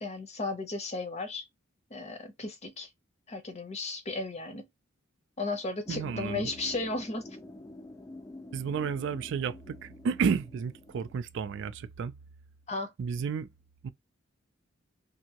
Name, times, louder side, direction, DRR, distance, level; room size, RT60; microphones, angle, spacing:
voice 1, 0.0-1.5 1.9-2.9 3.3-4.6 5.4-7.2 12.7-12.9, left 3 dB, 35° left, 0.7 m, -35 dB
sound 1, 5.9-11.1, left 2 dB, 15° left, 0.3 m, -47 dB
voice 2, 5.9-6.5 8.5-12.1 13.0-13.5 13.8-13.9, right 6 dB, 60° right, 0.3 m, -32 dB
2.7 x 2.6 x 2.8 m
head